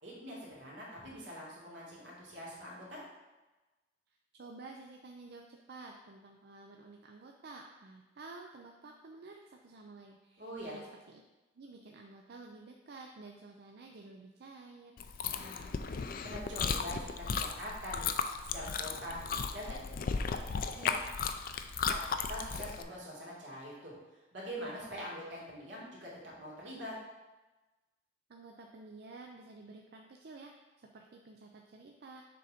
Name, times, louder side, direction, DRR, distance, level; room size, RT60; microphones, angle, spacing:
voice 1, 0.0-3.0 10.4-10.8 15.3-15.8 16.2-18.1 18.5-19.2 19.5-19.8 20.7-21.0 21.9-22.0 22.3-24.0 24.3-26.9, equal, 80° right, -5 dB, 2.3 m, -44 dB
voice 2, 4.3-11.2 11.5-15.0 28.3-32.2, right 3 dB, 60° right, 2 dB, 0.5 m, -51 dB
Chewing mastication, 15.0-22.8, left 5 dB, 50° left, 0.4 m, -35 dB
6.7 x 3.9 x 5.0 m, 1.1 s
head